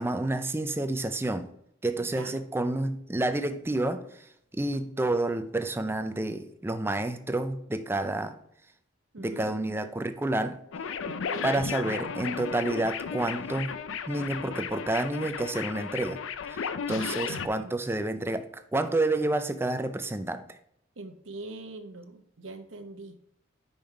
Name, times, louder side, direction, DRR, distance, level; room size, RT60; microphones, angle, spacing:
voice 1, 0.0-1.5 1.8-4.3 4.5-8.3 9.2-10.6 11.4-13.7 14.1-16.2 16.5-20.4, right 2 dB, 10° right, 9 dB, 0.4 m, -29 dB
voice 2, 2.0-2.4 9.1-9.5 11.1-11.5 17.0-17.7 21.0-23.2, right 2 dB, 85° right, 7 dB, 0.9 m, -43 dB
sound 1, 10.7-17.5, left 6 dB, 85° left, 0.5 m, -34 dB
5.5 x 5.2 x 4.5 m, 0.71 s
head